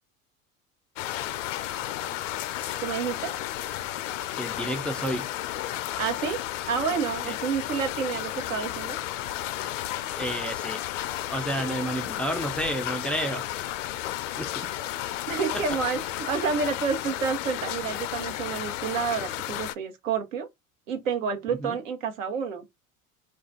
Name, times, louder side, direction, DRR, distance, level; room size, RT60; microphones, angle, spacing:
sound 1, 1.0-19.7, left 13 dB, 65° left, 0.5 m, -33 dB
voice 1, 2.8-3.3 6.0-9.0 15.3-20.5 20.9-22.6, right 6 dB, 70° right, 1.0 m, -29 dB
voice 2, 4.4-5.3 7.3-7.4 10.2-10.8 11.3-13.5 14.4-14.7 15.5-15.8 21.6-21.8, right 1 dB, 5° left, 0.3 m, -31 dB
2.4 x 2.3 x 3.9 m
figure-of-eight pair, 70°, 40 cm